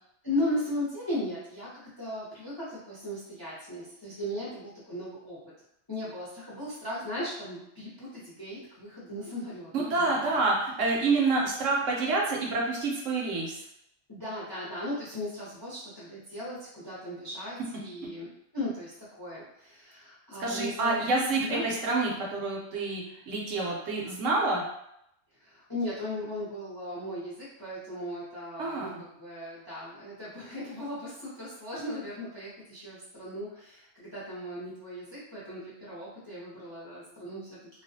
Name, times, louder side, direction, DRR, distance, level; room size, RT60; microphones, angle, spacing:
voice 1, 0.2-1.7 2.0-5.4 5.9-10.4 14.1-18.9 19.2-21.6 25.4-37.8, left 1 dB, 25° left, -8 dB, 0.6 m, -37 dB
voice 2, 9.7-13.5 20.4-24.6 28.6-29.0, right 3 dB, 70° right, -2 dB, 0.9 m, -28 dB
2.4 x 2.2 x 2.6 m, 0.78 s
omnidirectional pair, 1.4 m